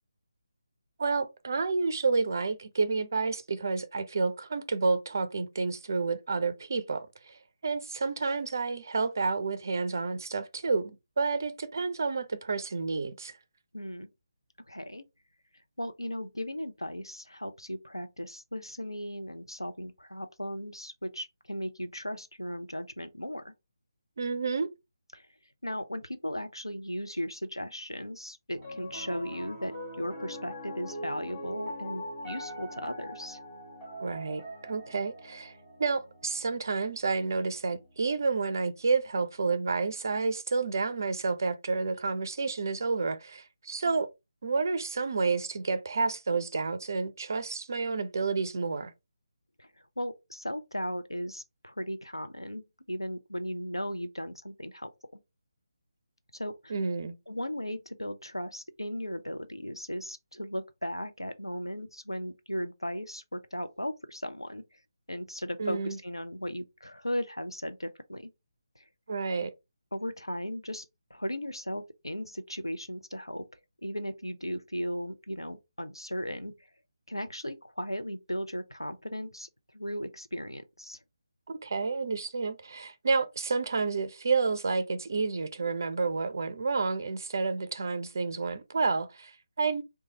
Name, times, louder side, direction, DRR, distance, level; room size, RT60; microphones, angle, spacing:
voice 1, 1.0-10.9 11.2-13.3 24.2-24.7 34.0-35.5 35.8-44.1 44.4-48.9 56.7-57.1 65.6-66.0 69.1-69.5 81.5-89.8, right 4 dB, 45° right, 0.4 m, -30 dB
voice 2, 13.7-14.1 14.7-15.0 15.8-23.5 25.1-25.3 25.6-33.4 49.6-49.7 50.0-55.2 56.3-56.7 57.3-64.6 65.1-68.3 68.8-68.9 69.9-70.9 71.1-73.4 73.8-76.6 77.1-79.5 79.7-81.0, equal, 90° left, 0.4 m, -36 dB
Piano, 28.5-38.9, equal, 15° left, 0.8 m, -43 dB
3.0 x 2.2 x 2.7 m
figure-of-eight pair, 150°, 2 cm